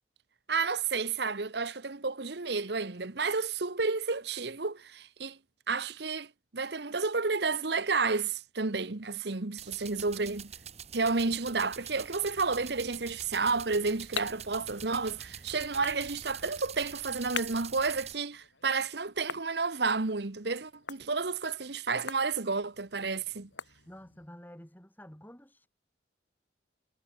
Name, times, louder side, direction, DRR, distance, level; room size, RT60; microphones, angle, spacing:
voice 1, 0.5-5.4 5.7-10.5 10.9-23.5, right 4 dB, 60° right, 1.1 m, -31 dB
sound 1, 9.6-18.1, right 8 dB, 35° right, 1.7 m, -45 dB
sound 2, 13.4-24.3, left 7 dB, 90° left, 5.0 m, -46 dB
voice 2, 23.9-25.7, equal, 10° left, 3.6 m, -50 dB
head